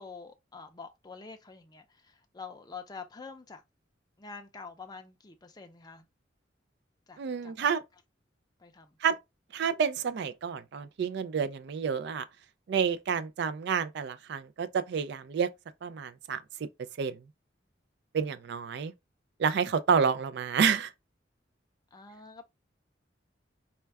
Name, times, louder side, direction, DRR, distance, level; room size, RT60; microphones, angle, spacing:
voice 1, 0.0-3.6 4.2-6.1 7.1-7.5 8.6-9.0 21.9-22.4, left 4 dB, 20° left, 0.5 m, -46 dB
voice 2, 7.2-7.8 9.0-9.2 9.5-12.3 12.7-15.5 15.8-16.4 17.0-17.2 18.1-18.9 19.4-20.9, right 6 dB, 65° right, 0.4 m, -29 dB
4.3 x 2.2 x 3.3 m
head